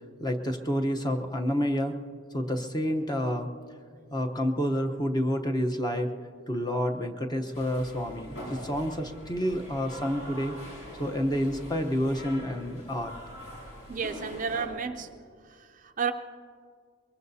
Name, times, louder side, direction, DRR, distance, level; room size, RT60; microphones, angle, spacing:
voice 1, 0.2-1.9 2.3-3.5 4.1-6.1 6.5-10.5 11.0-13.1, equal, 20° left, 5 dB, 0.9 m, -29 dB
sound 1, 7.5-14.7, equal, 75° left, 5.4 m, -43 dB
voice 2, 13.9-15.1 15.4-16.1, right 6 dB, 35° right, 7 dB, 0.5 m, -32 dB
23.0 x 22.5 x 2.8 m, 2.1 s
head